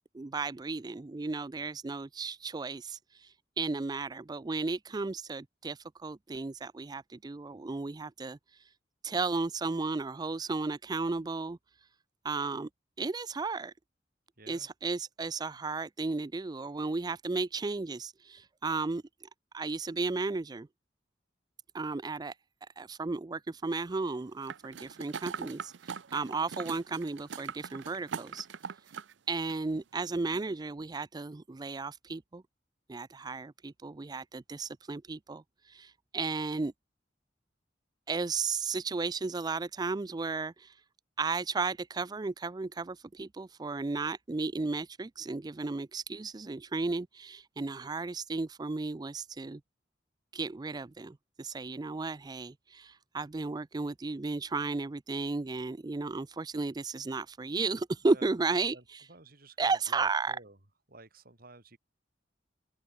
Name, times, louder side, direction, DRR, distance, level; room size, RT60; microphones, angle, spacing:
voice 1, 0.1-8.7 9.0-11.6 12.2-12.7 13.0-13.7 14.5-19.0 19.5-20.7 21.7-22.4 22.8-28.5 29.3-32.4 32.9-36.7 38.1-40.8 41.2-49.6 50.3-59.1 59.6-60.4, right 3 dB, 20° right, 0.4 m, -34 dB
voice 2, 14.4-14.7 58.0-58.8 59.1-60.6 60.9-61.8, right 2 dB, 55° right, 4.2 m, -53 dB
sound 1, 24.5-29.1 29.5-29.6, right 6 dB, 85° right, 0.6 m, -41 dB
open air
head